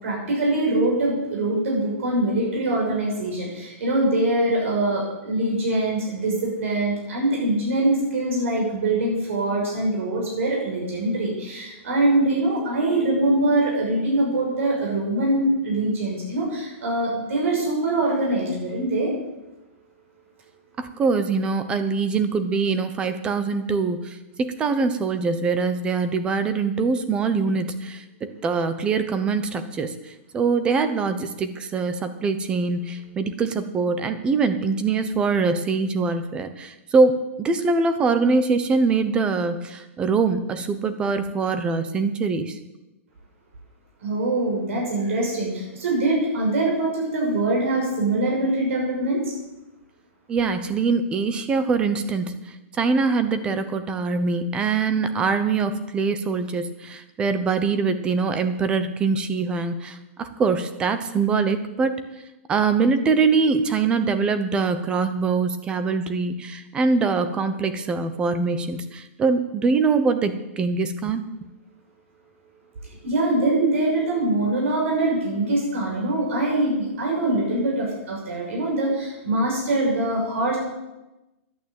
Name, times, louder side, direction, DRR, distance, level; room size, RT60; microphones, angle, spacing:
voice 1, 0.0-19.1 44.0-49.2 73.0-80.6, right 2 dB, 70° right, -2 dB, 6.3 m, -23 dB
voice 2, 20.8-42.6 50.3-52.3 52.8-62.0 62.5-71.2, right 4 dB, 15° right, 10 dB, 0.8 m, -23 dB
11.5 x 9.1 x 8.7 m, 0.99 s
hypercardioid pair, 170°, 7 cm